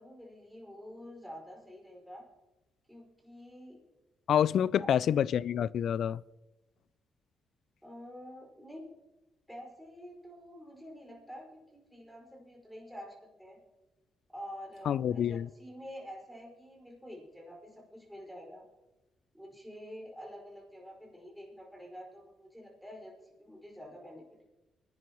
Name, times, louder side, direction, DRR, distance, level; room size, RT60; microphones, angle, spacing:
voice 1, 0.0-2.3 2.9-3.8 4.8-5.0 7.8-8.9 9.5-13.6 14.3-18.6 19.3-24.4, equal, ahead, 5.3 m, -48 dB
voice 2, 4.3-6.2 14.9-15.5, left 9 dB, 70° left, 0.3 m, -27 dB
22.5 x 10.5 x 3.1 m
cardioid pair, 75°, 0 cm